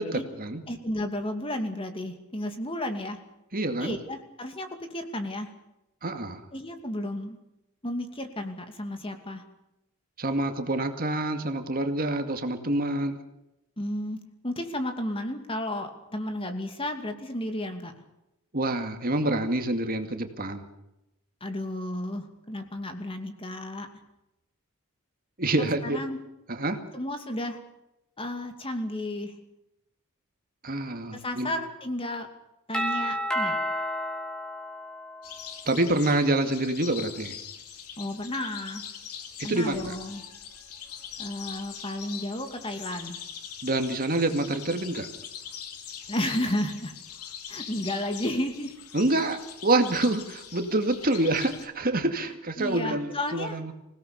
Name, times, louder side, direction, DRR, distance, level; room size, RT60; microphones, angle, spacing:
voice 1, 0.0-0.6 3.5-4.0 6.0-6.4 10.2-13.1 18.5-20.7 25.4-26.0 26.5-26.8 30.6-31.5 35.7-37.4 39.4-40.0 43.6-45.1 48.9-53.7, right 2 dB, 40° right, 6 dB, 2.3 m, -27 dB
voice 2, 0.7-3.2 3.8-5.5 6.5-7.4 7.8-9.4 13.8-14.2 14.4-17.9 21.4-23.9 25.6-26.2 26.9-27.6 28.2-29.3 31.1-32.3 32.7-33.6 38.0-38.8 39.4-40.2 41.2-43.2 46.1-46.9 47.5-48.7 52.6-53.6, left 1 dB, 25° left, 6 dB, 2.6 m, -32 dB
Doorbell, 32.7-35.6, equal, 5° left, 4.0 m, -31 dB
sound 1, 35.2-51.7, left 8 dB, 90° left, 3.0 m, -42 dB
26.5 x 18.0 x 6.9 m, 0.87 s
head